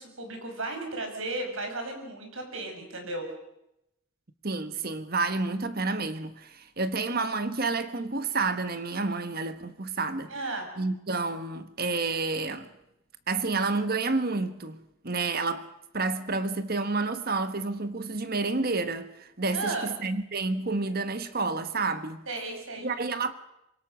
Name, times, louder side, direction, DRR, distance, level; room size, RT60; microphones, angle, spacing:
voice 1, 0.0-3.2 10.3-10.7 19.5-19.9 22.3-22.9, right 2 dB, 70° right, 5.7 m, -34 dB
voice 2, 4.4-10.3 10.8-12.7 13.3-15.7 15.9-22.2 22.8-23.3, right 3 dB, 45° right, 1.3 m, -29 dB
25.5 x 22.5 x 6.3 m
head